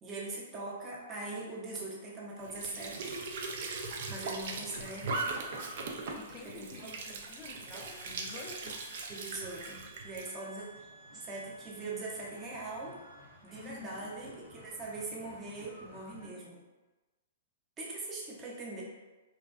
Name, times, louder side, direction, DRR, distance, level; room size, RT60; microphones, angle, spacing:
voice 1, 0.0-3.2 4.1-5.2 6.4-6.9 9.1-10.7 11.1-13.0 13.4-16.6 17.8-18.8, right 2 dB, 20° right, -4 dB, 0.6 m, -41 dB
Squeak / Sink (filling or washing) / Trickle dribble, 2.4-10.3, right 3 dB, 60° right, 0.4 m, -39 dB
voice 2, 6.1-8.8 13.6-14.1, left 5 dB, 30° left, 2 dB, 0.4 m, -49 dB
sound 1, 7.6-13.4, right 1 dB, 80° left, 0.6 m, -55 dB
sound 2, 10.6-16.3, equal, 85° right, 0.7 m, -56 dB
2.5 x 2.1 x 2.3 m, 1.2 s
hypercardioid pair, 120°, 0 cm